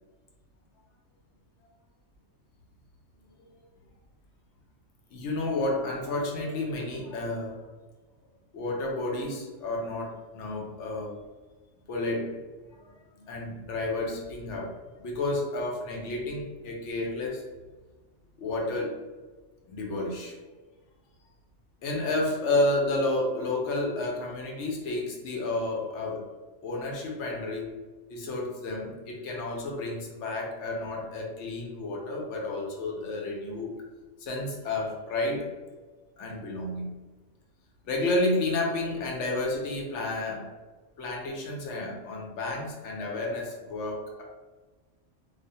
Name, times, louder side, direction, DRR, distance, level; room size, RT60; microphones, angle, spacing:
voice 1, 5.1-7.6 8.5-11.1 11.9-12.4 12.7-14.7 15.0-17.4 18.4-19.0 19.7-20.3 21.8-26.3 26.6-27.7 28.1-33.8 34.2-35.5 36.2-37.0 37.8-40.5 41.0-44.2, left 2 dB, 75° left, -1 dB, 0.9 m, -31 dB
2.4 x 2.1 x 2.6 m, 1.3 s
omnidirectional pair, 1.2 m